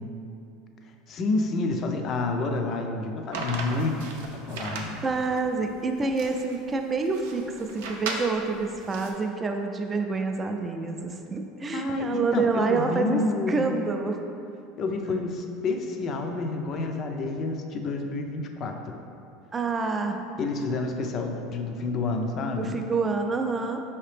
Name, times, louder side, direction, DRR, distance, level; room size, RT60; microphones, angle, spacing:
voice 1, 1.1-4.0 4.4-5.0 11.7-13.6 14.8-19.0 20.4-22.7, left 3 dB, 40° left, 4 dB, 0.4 m, -29 dB
sound 1, 3.3-9.1, right 3 dB, 85° right, 0.5 m, -37 dB
voice 2, 5.0-14.2 19.5-20.2 22.6-23.8, right 4 dB, 20° right, 4 dB, 0.3 m, -27 dB
4.9 x 2.8 x 3.3 m, 2.7 s
supercardioid pair, 120°, 0 cm